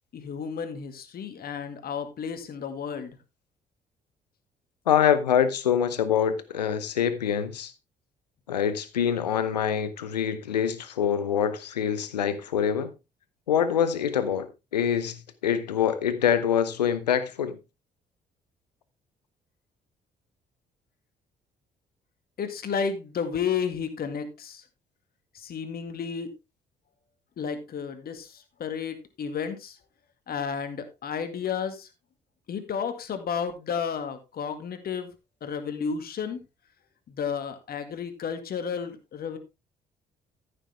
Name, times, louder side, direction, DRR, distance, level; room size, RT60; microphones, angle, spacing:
voice 1, 0.1-3.2 22.4-24.6 25.3-26.3 27.4-29.8 30.3-31.9 32.5-35.1 35.4-36.4 37.1-39.4, left 6 dB, 50° left, 2.0 m, -32 dB
voice 2, 4.9-7.7 8.5-12.9 13.5-17.6, left 8 dB, 80° left, 0.9 m, -25 dB
14.0 x 6.9 x 3.4 m
figure-of-eight pair, 45°, 21 cm